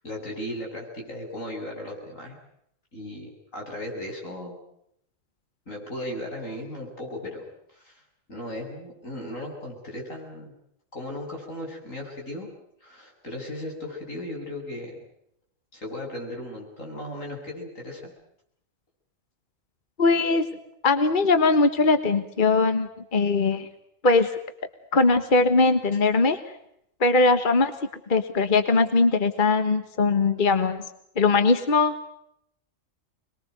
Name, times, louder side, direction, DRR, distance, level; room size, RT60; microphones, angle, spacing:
voice 1, 0.0-2.4 2.9-4.6 5.7-8.0 8.3-10.5 10.9-12.5 12.8-14.9 15.7-18.1, left 1 dB, 85° left, 0 dB, 8.0 m, -36 dB
voice 2, 20.0-20.4 20.8-23.7 24.0-24.3 24.9-26.4 27.0-27.7 28.1-30.8 31.2-31.9, left 3 dB, 40° left, 9 dB, 1.5 m, -20 dB
26.5 x 21.5 x 7.9 m, 0.74 s
omnidirectional pair, 1.3 m